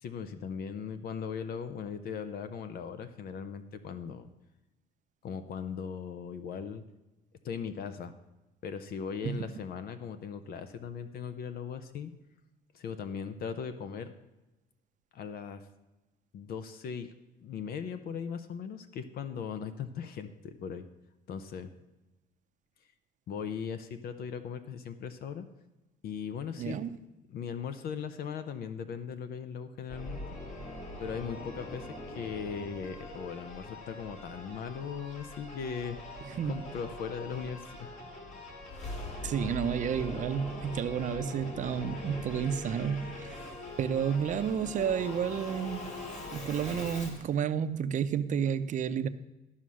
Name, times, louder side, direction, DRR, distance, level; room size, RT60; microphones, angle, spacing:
voice 1, 0.0-4.3 5.2-6.8 7.4-8.1 8.6-12.1 12.7-14.1 15.1-15.6 16.3-17.1 17.4-20.9 21.3-21.7 23.3-25.5 26.0-26.8 27.3-30.4 31.0-38.0, left 7 dB, 60° left, 0.7 m, -39 dB
voice 2, 26.6-27.0 36.3-36.5 39.2-43.3 43.8-45.9 46.3-49.1, right 8 dB, 45° right, 0.7 m, -31 dB
Singing / Musical instrument, 29.9-47.3, left 2 dB, 45° left, 2.6 m, -42 dB
12.5 x 5.7 x 6.2 m
cardioid pair, 110°, 17 cm